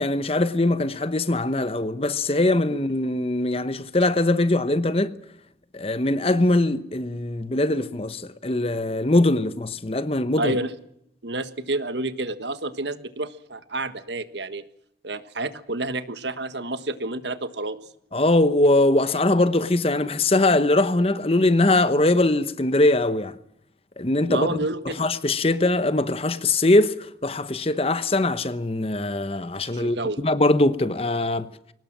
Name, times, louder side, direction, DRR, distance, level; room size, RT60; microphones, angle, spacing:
voice 1, 0.0-5.1 5.7-10.6 18.1-23.3 24.0-24.6 25.0-26.9 27.2-31.5, left 2 dB, 35° left, 1.0 m, -21 dB
voice 2, 10.4-10.7 11.2-14.6 15.0-17.8 24.3-25.1 29.7-30.2, right 2 dB, 75° right, 1.5 m, -29 dB
23.0 x 19.0 x 7.4 m
head